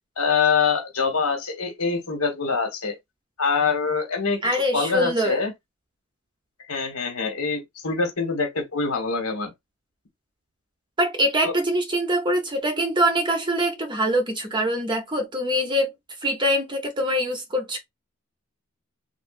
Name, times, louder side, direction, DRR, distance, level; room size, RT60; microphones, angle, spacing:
voice 1, 0.2-2.9 3.4-4.4 4.7-5.5 6.7-9.5 11.4-11.5, left 5 dB, 85° left, 1.4 m, -24 dB
voice 2, 4.4-5.4 11.0-15.9 16.2-17.8, equal, 20° right, 0.8 m, -24 dB
3.3 x 2.6 x 2.4 m
head